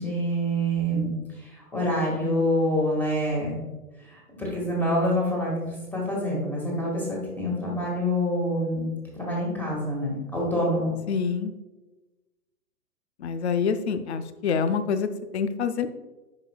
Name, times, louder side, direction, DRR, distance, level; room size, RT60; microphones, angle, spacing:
voice 1, 0.0-3.6 4.1-10.9, equal, 5° left, -3 dB, 1.8 m, -26 dB
voice 2, 11.1-11.5 13.2-15.9, left 6 dB, 50° left, 11 dB, 0.6 m, -26 dB
10.5 x 5.1 x 2.3 m, 1.1 s
figure-of-eight pair, 125°, 45 cm